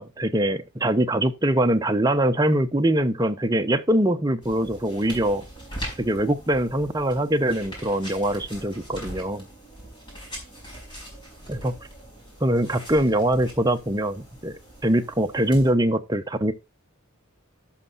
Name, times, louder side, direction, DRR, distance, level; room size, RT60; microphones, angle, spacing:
voice 1, 0.0-5.4 6.0-9.5 11.5-11.7 12.4-14.6 14.8-16.5, right 1 dB, 20° right, 0.8 m, -23 dB
sound 1, 4.4-15.7, equal, 20° left, 4.8 m, -41 dB
12.0 x 5.5 x 4.0 m
head